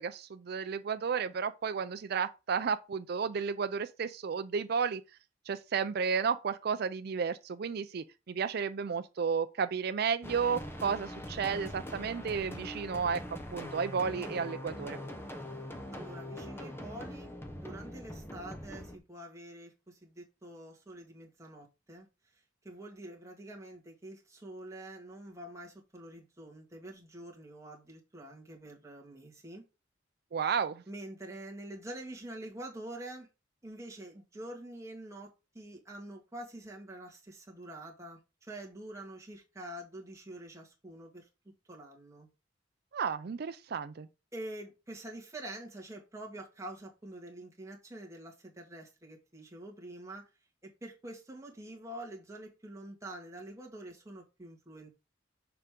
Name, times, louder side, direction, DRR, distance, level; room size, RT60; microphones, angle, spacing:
voice 1, 0.0-5.0 5.5-13.2 13.5-15.0 30.3-30.8 42.9-44.1, right 6 dB, 55° right, 0.4 m, -32 dB
sound 1, 10.2-19.0, left 1 dB, 10° left, 0.8 m, -42 dB
voice 2, 15.9-22.1 22.6-29.6 30.9-33.3 33.6-41.3 41.7-42.3 44.3-50.3 50.6-54.9, right 1 dB, 15° right, 1.9 m, -46 dB
6.8 x 5.0 x 3.7 m
head